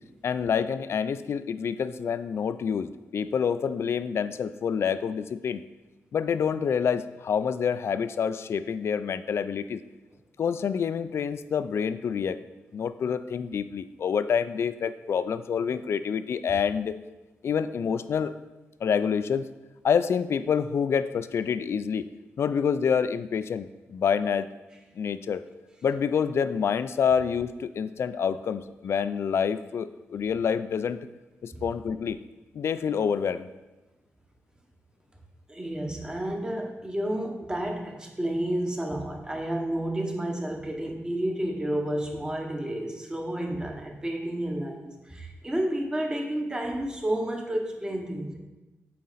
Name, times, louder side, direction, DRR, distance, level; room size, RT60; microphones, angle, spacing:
voice 1, 0.2-5.6 6.1-9.8 10.4-12.4 12.7-17.0 17.4-18.3 18.8-19.5 19.8-22.1 22.4-24.5 25.0-25.4 25.8-31.1 31.4-32.2 32.5-33.5, left 7 dB, 60° left, 13 dB, 0.3 m, -27 dB
voice 2, 35.5-48.4, right 1 dB, 15° right, 2 dB, 1.1 m, -31 dB
8.5 x 4.2 x 4.0 m, 1.1 s
cardioid pair, 100°, 5 cm